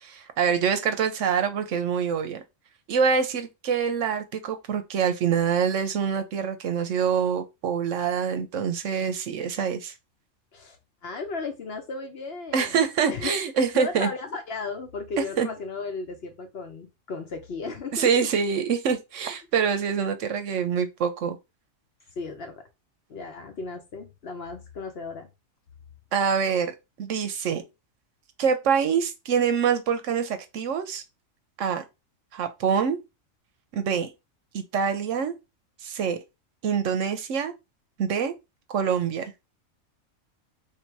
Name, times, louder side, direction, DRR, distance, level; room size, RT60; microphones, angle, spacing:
voice 1, 0.0-2.4 2.9-9.9 12.5-14.1 15.4-15.5 17.9-21.4 26.1-27.6 28.4-31.0 31.6-31.8 32.3-33.0 33.7-34.1 34.5-35.3 35.8-36.2 36.6-37.5 38.0-38.3 38.7-39.3, right 7 dB, 70° right, 1.0 m, -25 dB
voice 2, 11.0-12.8 13.1-13.3 13.7-18.3 22.2-22.6 23.1-25.3, left 4 dB, 55° left, 0.9 m, -35 dB
3.2 x 2.8 x 4.5 m
omnidirectional pair, 1.4 m